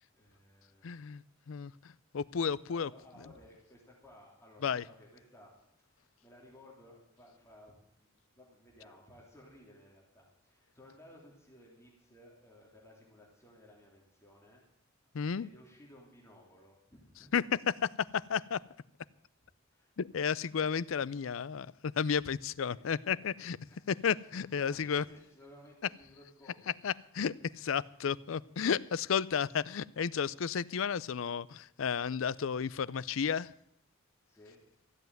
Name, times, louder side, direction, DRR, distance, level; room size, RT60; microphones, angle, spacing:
voice 1, 0.1-1.0 2.7-5.5 5.9-14.6 15.4-17.3 19.7-19.9 22.7-22.8 23.1-23.8 24.3-26.7 34.2-34.6, left 1 dB, 15° left, -3 dB, 3.3 m, -58 dB
voice 2, 0.8-1.2 1.5-1.7 2.1-2.9 4.6-4.8 15.1-15.5 17.3-18.6 20.0-23.6 23.9-25.0 26.8-33.5, left 7 dB, 75° left, 20 dB, 0.5 m, -32 dB
14.5 x 8.1 x 9.1 m, 0.73 s
head